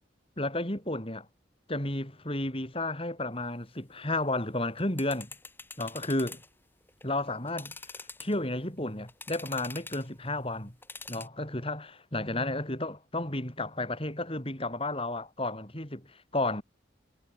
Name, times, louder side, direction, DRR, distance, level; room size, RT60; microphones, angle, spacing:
voice 1, 0.4-1.3 1.7-5.3 5.8-6.4 7.0-7.7 8.2-10.7 11.1-16.6, left 2 dB, 30° left, 5.0 m, -32 dB
sound 1, 4.7-6.5 6.9-7.0 7.5-8.6 9.1-10.1 10.8-11.3, left 3 dB, 10° left, 3.5 m, -44 dB
head